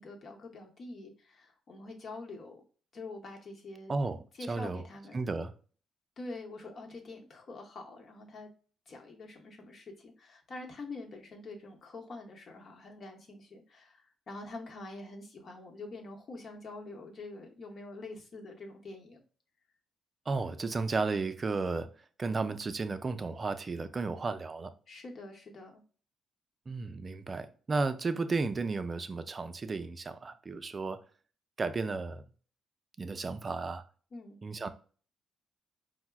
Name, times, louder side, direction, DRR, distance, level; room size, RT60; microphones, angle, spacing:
voice 1, 0.0-2.6 2.9-3.9 4.4-5.3 6.2-8.5 8.9-19.2 24.9-25.8 34.1-34.4, left 2 dB, 50° left, 0.9 m, -45 dB
voice 2, 3.9-4.8 5.1-5.5 20.3-21.9 22.2-24.7 26.7-31.0 31.6-32.2 33.0-33.8 34.4-34.7, right 3 dB, 35° right, 0.3 m, -33 dB
4.5 x 2.0 x 2.3 m
cardioid pair, 90°, 0 cm